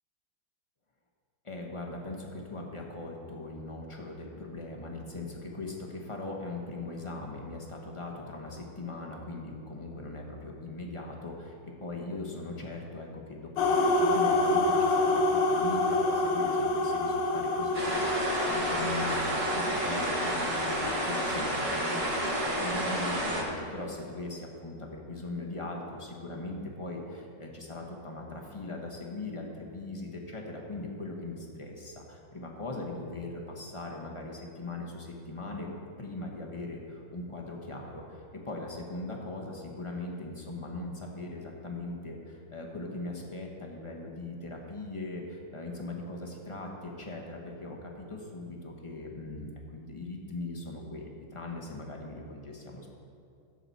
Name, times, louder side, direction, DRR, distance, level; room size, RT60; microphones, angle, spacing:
voice 1, 1.4-35.7 36.0-53.0, left 2 dB, 20° left, 0 dB, 1.0 m, -40 dB
sound 1, 13.6-22.7, left 2 dB, 80° left, 1.6 m, -28 dB
sound 2, 17.7-23.4, right 1 dB, 40° right, 2.1 m, -30 dB
14.5 x 7.9 x 4.2 m, 2.5 s
omnidirectional pair, 2.1 m